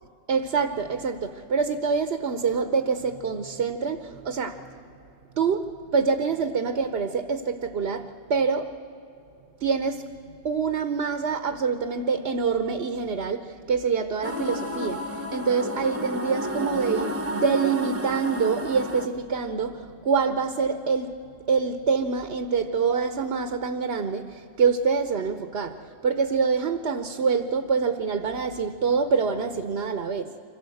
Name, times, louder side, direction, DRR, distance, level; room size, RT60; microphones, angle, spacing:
voice 1, 0.3-4.6 5.4-5.7 5.9-8.7 9.6-10.0 10.4-15.0 15.3-21.2 21.5-25.8 26.0-30.2, right 5 dB, 60° right, 9 dB, 1.1 m, -25 dB
sound 1, 14.2-19.1, equal, 10° right, 0.9 m, -31 dB
25.0 x 16.0 x 7.8 m, 2.7 s
omnidirectional pair, 1.3 m